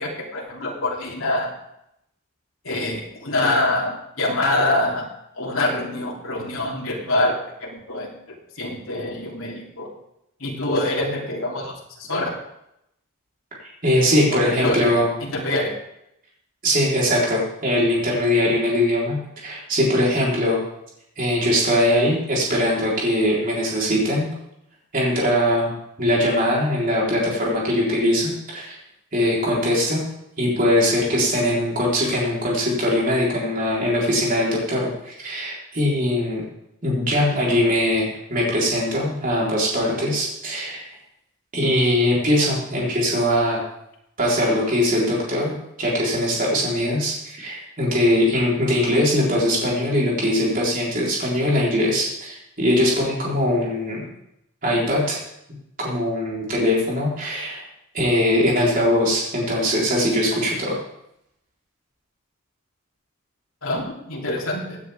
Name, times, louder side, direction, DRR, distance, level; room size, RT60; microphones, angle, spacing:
voice 1, 0.0-1.5 2.6-5.0 5.3-7.3 7.6-8.1 8.6-9.9 10.4-11.7 12.0-12.3 14.3-15.7 63.6-64.8, left 2 dB, 75° left, -3 dB, 3.1 m, -25 dB
voice 2, 13.8-15.1 16.6-20.6 21.2-24.3 24.9-25.7 26.0-28.8 29.1-30.0 30.4-36.4 36.8-40.9 41.5-43.6 44.2-54.1 54.6-55.2 55.8-57.6 57.9-60.8, left 1 dB, 40° right, -4 dB, 4.1 m, -21 dB
16.5 x 9.6 x 3.6 m, 0.79 s
head